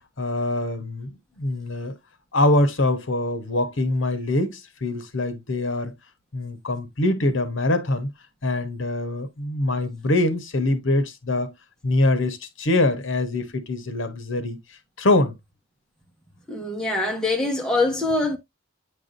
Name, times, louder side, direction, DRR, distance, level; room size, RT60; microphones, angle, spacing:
voice 1, 0.2-2.0 2.3-5.9 6.3-8.1 8.4-11.5 11.8-15.4, left 2 dB, 70° left, 1.2 m, -24 dB
voice 2, 16.5-18.4, left 2 dB, 5° left, 1.2 m, -24 dB
8.7 x 4.8 x 2.6 m
head